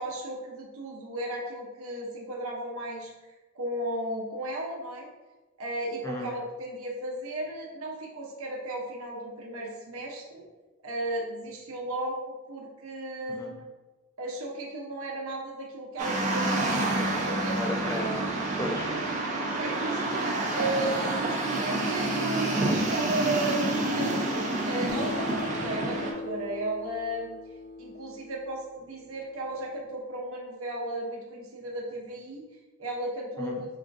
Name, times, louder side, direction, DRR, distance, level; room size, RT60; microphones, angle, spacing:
voice 1, 0.0-3.1 3.5-5.1 5.6-10.4 10.8-13.7 14.2-17.6 19.6-27.4 27.8-32.4 32.8-33.7, right 1 dB, 65° right, -2 dB, 0.8 m, -35 dB
voice 2, 6.0-6.3 13.3-13.5 17.5-18.9 33.4-33.6, left 1 dB, 15° left, 0 dB, 0.3 m, -34 dB
sound 1, 16.0-26.1, right 2 dB, 35° right, 0.6 m, -28 dB
Acoustic guitar, 24.9-29.7, left 2 dB, 55° left, 0.7 m, -40 dB
4.9 x 2.6 x 2.4 m, 1.1 s
head